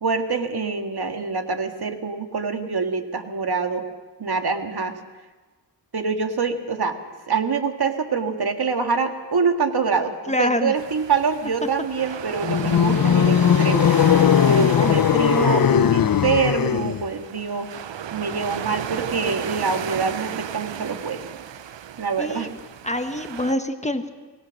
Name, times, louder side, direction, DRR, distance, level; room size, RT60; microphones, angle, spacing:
voice 1, 0.0-3.9 4.2-5.0 5.9-7.0 7.3-13.9 14.5-17.7 18.1-21.2 22.0-22.5, right 5 dB, 60° right, 5 dB, 1.9 m, -25 dB
voice 2, 10.3-10.7 14.4-15.0 22.2-22.5 22.8-24.1, left 1 dB, 15° left, 7 dB, 1.3 m, -26 dB
sound 1, 10.7-23.5, right 9 dB, 80° right, 0.8 m, -34 dB
sound 2, 12.4-17.1, left 9 dB, 50° left, 0.6 m, -18 dB
24.5 x 19.0 x 6.4 m, 1.3 s
wide cardioid pair, 75°, 44 cm